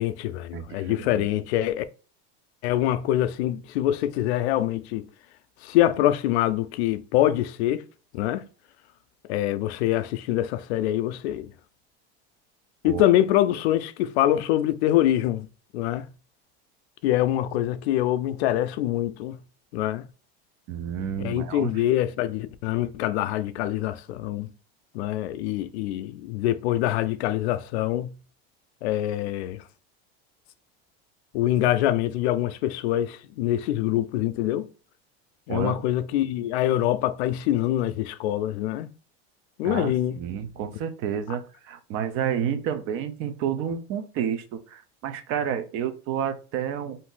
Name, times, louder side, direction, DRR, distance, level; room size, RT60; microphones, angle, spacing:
voice 1, 0.0-1.8 2.6-5.1 5.6-7.8 8.1-8.4 9.3-11.5 12.8-15.5 15.7-16.1 17.0-19.4 19.7-20.1 21.2-24.5 24.9-28.2 28.8-29.6 31.3-34.7 35.5-38.9 39.6-40.2, left 13 dB, 90° left, 0.5 m, -25 dB
voice 2, 0.5-1.2 12.8-13.0 20.7-21.7 35.5-35.8 39.6-47.0, right 8 dB, 45° right, 0.5 m, -30 dB
2.6 x 2.5 x 3.7 m
supercardioid pair, 140°, 32 cm